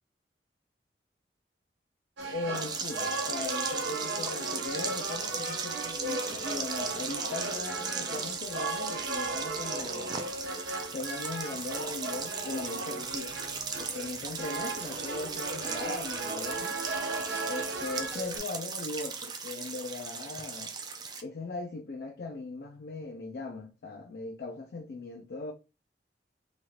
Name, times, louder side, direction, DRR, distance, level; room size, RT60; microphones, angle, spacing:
sound 1, 2.2-18.4, right 2 dB, 90° right, 0.8 m, -36 dB
voice 1, 2.3-10.1 10.9-13.4 13.8-16.8 17.4-20.7 21.2-25.5, left 3 dB, 60° left, 0.4 m, -39 dB
sound 2, 2.5-21.2, right 5 dB, 25° right, 0.4 m, -37 dB
3.1 x 2.4 x 2.8 m
head